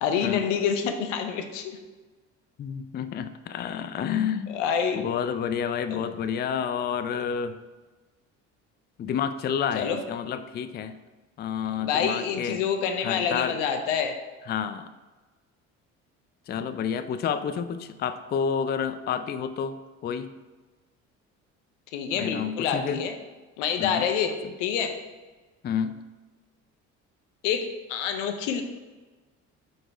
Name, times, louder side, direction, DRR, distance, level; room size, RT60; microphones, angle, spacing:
voice 1, 0.0-1.8 4.5-5.0 5.9-6.0 9.7-10.0 11.8-14.1 21.9-23.1 23.6-24.3 24.6-25.0 27.4-28.6, left 7 dB, 85° left, 6 dB, 0.7 m, -27 dB
voice 2, 2.6-4.6 4.9-7.6 9.0-11.0 11.4-12.6 13.0-13.6 14.5-14.9 16.5-19.8 20.0-20.3 22.1-23.0 23.8-24.0 25.6-26.0, left 7 dB, 30° left, 10 dB, 0.4 m, -29 dB
5.1 x 4.3 x 4.4 m, 1.2 s
hypercardioid pair, 65°, 36 cm